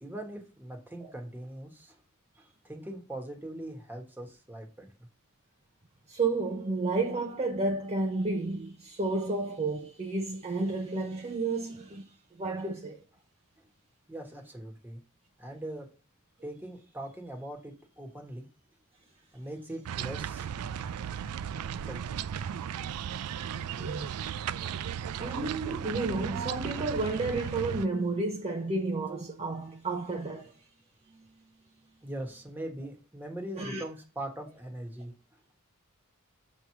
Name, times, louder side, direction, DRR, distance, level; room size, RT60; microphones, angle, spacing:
voice 1, 0.0-2.0 2.3-4.9 14.1-15.0 15.4-15.9 16.4-18.5 19.3-20.5 21.8-22.3 32.0-35.1, right 1 dB, 10° right, 1.3 m, -41 dB
voice 2, 6.1-12.1 12.4-13.0 23.8-24.2 25.2-30.5 33.5-33.8, right 3 dB, 30° right, 0.6 m, -31 dB
sound 1, 19.9-27.9, right 8 dB, 90° right, 0.4 m, -35 dB
6.7 x 3.1 x 5.7 m
head